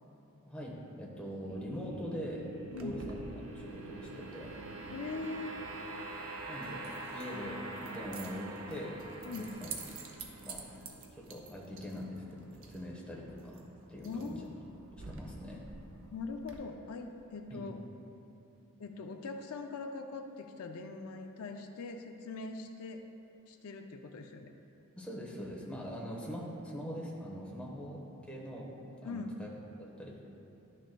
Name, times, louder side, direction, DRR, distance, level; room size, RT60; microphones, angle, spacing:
voice 1, 0.5-2.5 2.8-3.2 3.5-4.6 6.5-9.7 10.4-10.6 11.2-13.6 13.9-14.5 14.9-15.6 17.5-17.7 25.0-28.7 29.0-29.5 30.0-30.2, equal, 5° left, -4 dB, 1.0 m, -42 dB
sound 1, 1.4-12.6, right 2 dB, 90° right, 0.9 m, -45 dB
Keys jangling, 2.7-16.5, right 4 dB, 60° right, 0.7 m, -51 dB
voice 2, 4.9-5.5 9.2-9.5 14.0-14.6 16.1-17.8 18.8-23.0 23.5-24.5 29.0-29.3, left 3 dB, 75° left, 5 dB, 0.4 m, -42 dB
11.5 x 6.5 x 2.2 m, 2.8 s
head